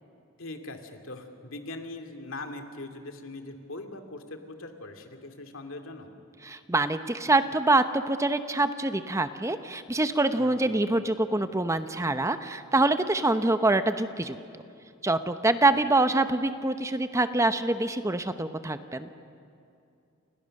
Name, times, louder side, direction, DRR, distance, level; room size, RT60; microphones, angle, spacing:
voice 1, 0.4-6.1 10.4-10.7, left 2 dB, 70° left, 5 dB, 2.6 m, -41 dB
voice 2, 6.4-14.4 15.0-19.1, right 2 dB, 15° right, 10 dB, 0.8 m, -25 dB
30.0 x 28.5 x 6.6 m, 2.5 s
head